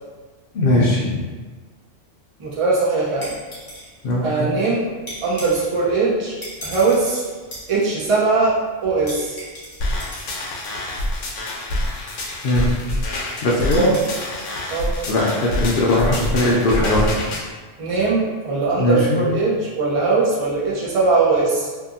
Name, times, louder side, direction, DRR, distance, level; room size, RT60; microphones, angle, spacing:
voice 1, 0.5-1.2 4.0-4.5 12.4-12.7 13.4-13.8 15.1-17.2 18.8-19.2, left 1 dB, 60° left, -4 dB, 0.6 m, -19 dB
voice 2, 2.4-3.3 4.2-4.9 5.2-6.3 6.6-7.2 7.7-9.4 13.8-14.0 14.7-14.9 17.8-21.7, right 3 dB, 35° right, -7 dB, 0.6 m, -20 dB
sound 1, 3.0-15.6, equal, 25° left, 0.8 m, -41 dB
sound 2, 9.8-17.4, left 1 dB, 80° left, 1.0 m, -26 dB
2.6 x 2.6 x 2.5 m, 1.4 s
omnidirectional pair, 1.3 m